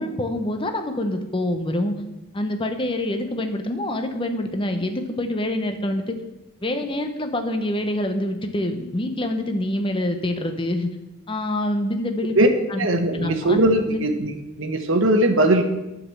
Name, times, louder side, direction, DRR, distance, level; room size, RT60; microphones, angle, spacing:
voice 1, 0.0-1.9 2.3-6.2 6.6-10.9 11.3-12.3 12.7-12.9 13.1-13.6 13.9-14.0, left 1 dB, 25° left, 6 dB, 0.7 m, -26 dB
voice 2, 12.8-15.6, right 1 dB, 65° right, 5 dB, 1.0 m, -19 dB
9.3 x 5.2 x 7.7 m, 1.0 s
head